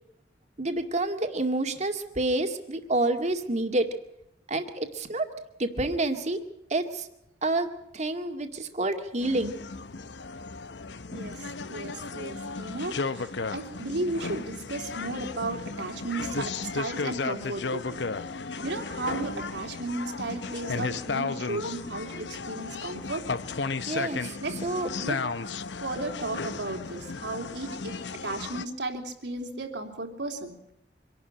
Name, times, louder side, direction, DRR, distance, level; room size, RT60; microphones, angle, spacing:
voice 1, 0.6-3.9 4.5-5.3 5.6-6.4 6.7-7.1 7.4-9.5 23.9-24.9, right 2 dB, 40° right, 6 dB, 2.1 m, -28 dB
sound 1, 9.2-28.7, left 4 dB, 75° left, 0.9 m, -34 dB
voice 2, 11.1-18.1 18.6-23.3 24.4-24.5 25.0-25.2 25.8-28.0 28.2-30.5, right 2 dB, 75° right, 4 dB, 3.4 m, -34 dB
25.5 x 12.0 x 9.9 m, 0.82 s
head